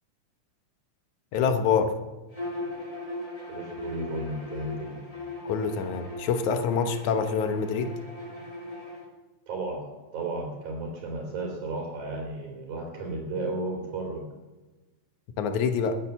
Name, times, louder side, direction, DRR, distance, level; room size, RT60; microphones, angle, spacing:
voice 1, 1.3-2.0 5.5-7.9 15.4-16.0, left 6 dB, 85° left, 9 dB, 2.5 m, -26 dB
Bowed string instrument, 2.3-9.0, left 2 dB, 10° left, 2.6 m, -38 dB
voice 2, 3.5-5.0 9.5-9.9 10.1-14.2, right 2 dB, 85° right, 0 dB, 4.3 m, -33 dB
20.0 x 9.2 x 7.0 m, 1.2 s
omnidirectional pair, 3.3 m